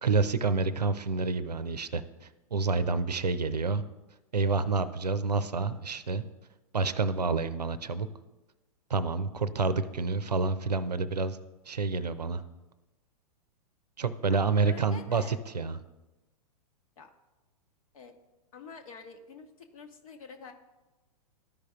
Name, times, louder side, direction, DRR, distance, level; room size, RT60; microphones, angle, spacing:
voice 1, 0.0-3.8 4.3-6.2 6.7-8.1 8.9-11.4 11.7-12.4 14.0-15.8, right 4 dB, 85° right, 13 dB, 0.5 m, -28 dB
voice 2, 14.3-15.4 17.0-17.1 17.9-18.1 18.5-19.5 19.7-20.5, left 4 dB, 60° left, 4 dB, 1.1 m, -47 dB
13.5 x 5.1 x 2.4 m, 1.1 s
figure-of-eight pair, 105°, 20 cm